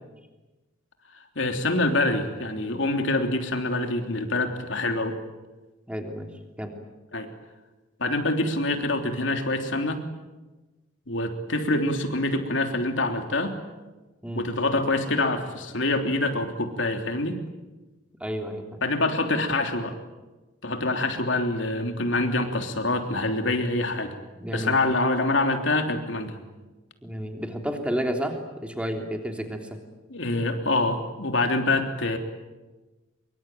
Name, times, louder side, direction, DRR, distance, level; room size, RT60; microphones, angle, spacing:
voice 1, 1.4-5.2 7.1-7.3 8.0-10.0 11.1-13.6 14.3-17.4 18.8-19.9 20.6-24.1 24.5-26.4 30.1-32.2, left 2 dB, 70° left, 5 dB, 3.3 m, -25 dB
voice 2, 5.9-6.3 6.6-6.7 14.2-14.4 18.2-18.8 24.4-24.8 27.0-29.8, equal, 5° right, 4 dB, 3.3 m, -31 dB
25.0 x 23.5 x 9.2 m, 1.2 s
head